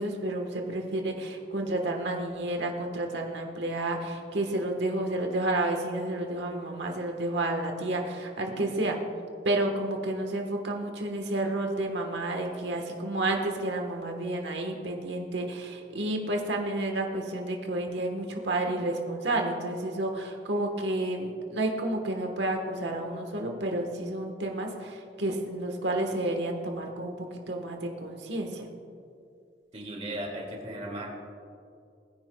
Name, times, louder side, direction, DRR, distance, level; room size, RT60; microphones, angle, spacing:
voice 1, 0.0-9.0 9.4-28.7, right 1 dB, 85° right, 3 dB, 1.3 m, -30 dB
voice 2, 29.7-31.1, right 1 dB, 35° right, -1 dB, 2.3 m, -36 dB
20.5 x 9.9 x 2.3 m, 2.4 s
head